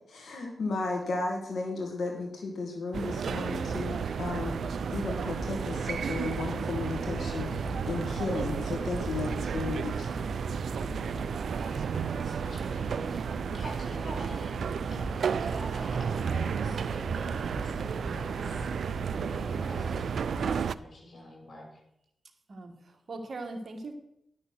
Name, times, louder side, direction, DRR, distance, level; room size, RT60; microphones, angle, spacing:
voice 1, 0.1-4.6 4.9-10.1, left 3 dB, 80° left, 1 dB, 1.9 m, -34 dB
sound 1, 2.9-20.8, right 7 dB, 80° right, 0.3 m, -32 dB
sound 2, 3.4-20.6, left 2 dB, 40° left, 1.1 m, -43 dB
voice 2, 11.5-13.2 13.5-14.6 14.9-20.1 20.7-21.8, left 1 dB, 55° left, 0 dB, 5.5 m, -47 dB
voice 3, 22.5-23.9, right 2 dB, 60° right, 5 dB, 1.6 m, -40 dB
11.5 x 6.6 x 6.4 m, 0.78 s
cardioid pair, 60°, 0 cm